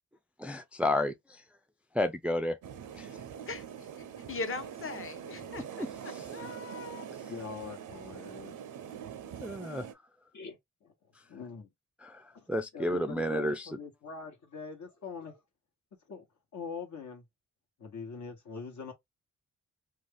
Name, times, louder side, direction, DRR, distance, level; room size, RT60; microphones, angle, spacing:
voice 1, 0.4-1.4 1.9-2.6 2.9-3.3 5.6-6.4 7.1-7.3 9.4-9.9 12.0-13.7, left 1 dB, 5° right, 0.3 m, -32 dB
sound 1, 2.6-9.9, right 8 dB, 80° right, 0.5 m, -44 dB
voice 2, 3.5-3.9 4.3-7.1, left 4 dB, 45° left, 0.7 m, -40 dB
voice 3, 7.3-8.6 10.3-10.9 11.3-11.7 12.3-12.5 12.7-15.4 16.1-16.3 16.5-17.2 17.8-18.9, left 5 dB, 70° left, 1.1 m, -43 dB
2.5 x 2.3 x 3.3 m
cardioid pair, 70°, 31 cm